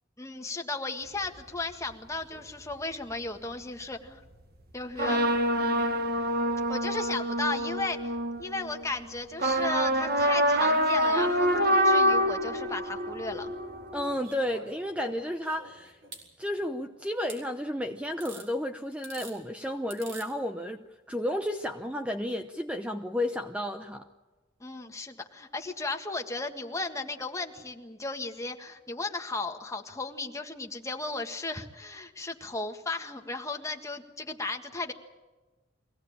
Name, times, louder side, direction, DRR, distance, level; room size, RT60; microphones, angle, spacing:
voice 1, 0.2-4.2 4.7-5.2 5.6-6.0 6.7-13.5 24.6-34.9, left 3 dB, 15° left, 4 dB, 1.7 m, -35 dB
sound 1, 1.1-1.6 2.7-2.8 5.0-8.9 9.3-14.1, equal, 55° right, 1.8 m, -26 dB
voice 2, 13.9-16.0 16.4-24.1, left 1 dB, 5° right, 6 dB, 0.8 m, -32 dB
sound 2, 14.2-16.3 17.3-17.4 18.2-18.5 18.9-19.4 19.9-20.3 21.5-21.6, right 3 dB, 85° right, 5.6 m, -46 dB
23.5 x 17.0 x 8.7 m, 1.2 s
head